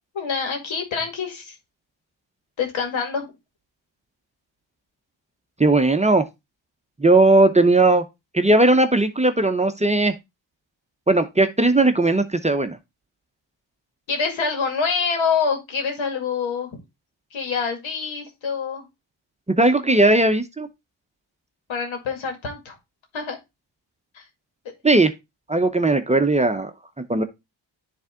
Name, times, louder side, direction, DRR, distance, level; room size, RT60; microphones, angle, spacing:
voice 1, 0.1-1.6 2.6-3.3 14.1-16.7 17.3-18.8 21.7-22.8 23.1-23.4 24.1-24.2 24.6-24.7, left 5 dB, 85° left, 2.1 m, -26 dB
voice 2, 5.6-6.2 7.0-8.0 8.3-10.1 11.1-12.8 19.6-20.7 24.8-25.1 25.5-26.7 27.0-27.2, right 2 dB, 15° right, 0.7 m, -17 dB
10.5 x 3.5 x 3.6 m
cardioid pair, 80°, 45 cm